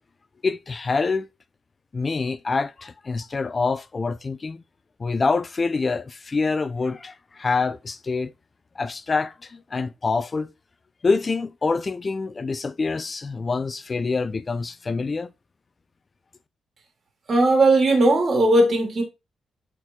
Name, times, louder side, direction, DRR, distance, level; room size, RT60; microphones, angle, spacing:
voice 1, 0.4-1.3 1.9-4.6 5.0-8.3 8.8-10.5 11.0-15.3, left 4 dB, 30° left, 0.5 m, -26 dB
voice 2, 17.3-19.0, right 2 dB, 45° right, 2.8 m, -17 dB
7.6 x 4.6 x 3.8 m
cardioid pair, 115°, 0 cm